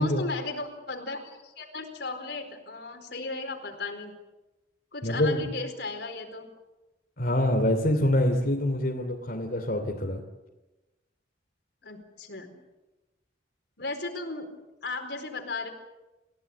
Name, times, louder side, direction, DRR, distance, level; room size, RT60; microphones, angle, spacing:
voice 1, 0.0-4.1 4.9-6.5 11.8-12.5 13.8-14.5 14.8-15.7, left 3 dB, 70° left, 6 dB, 4.5 m, -35 dB
voice 2, 5.0-5.4 7.2-10.2, left 1 dB, 55° left, 1 dB, 2.9 m, -25 dB
29.5 x 16.5 x 8.6 m, 1.1 s
head